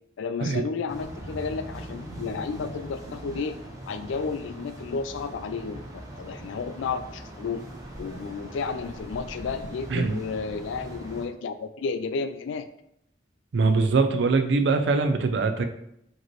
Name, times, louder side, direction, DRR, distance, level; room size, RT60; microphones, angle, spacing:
voice 1, 0.2-3.6 3.9-7.7 8.0-12.7, left 5 dB, 80° left, 11 dB, 0.3 m, -32 dB
sound 1, 0.9-11.2, right 1 dB, 15° right, 0.7 m, -41 dB
voice 2, 13.5-15.6, right 4 dB, 65° right, 8 dB, 0.4 m, -22 dB
4.8 x 3.0 x 3.0 m, 0.77 s
head